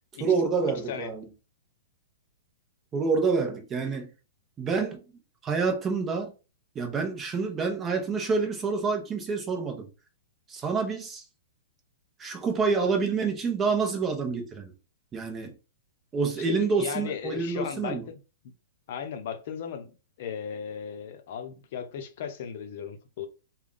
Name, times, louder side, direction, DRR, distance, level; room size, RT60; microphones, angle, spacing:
voice 1, 0.2-1.3 2.9-4.1 4.6-5.0 5.4-6.3 6.7-9.9 10.5-11.2 12.2-14.7 15.1-15.6 16.1-18.1, right 4 dB, 20° right, 0.8 m, -27 dB
voice 2, 16.4-18.2 18.9-23.3, left 8 dB, 55° left, 0.7 m, -36 dB
3.4 x 2.3 x 3.8 m
hypercardioid pair, 150°, 0 cm